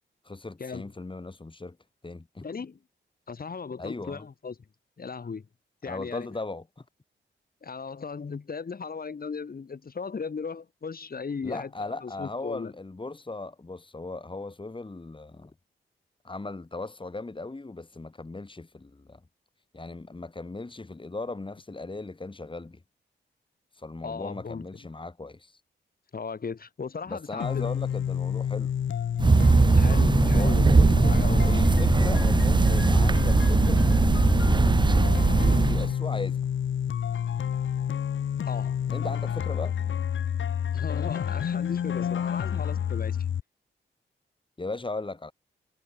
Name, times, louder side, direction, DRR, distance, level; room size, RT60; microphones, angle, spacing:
voice 1, 0.2-1.8 2.0-2.5 3.8-4.2 5.9-6.8 11.4-15.5 16.2-19.2 19.7-22.8 23.8-25.6 27.1-28.7 30.1-33.9 35.4-36.5 38.9-39.7 44.6-45.3, left 3 dB, 25° left, 4.5 m, -38 dB
voice 2, 2.4-2.8 3.3-4.6 5.0-5.4 5.8-6.3 7.6-11.7 12.0-12.7 24.0-24.6 26.1-27.7 29.7-31.4 38.5-38.8 40.7-43.3, left 5 dB, 50° left, 3.1 m, -37 dB
sound 1, 27.4-43.4, left 8 dB, 75° left, 2.2 m, -29 dB
sound 2, 29.2-35.9, right 3 dB, 25° right, 0.6 m, -20 dB
cardioid pair, 65°, 20 cm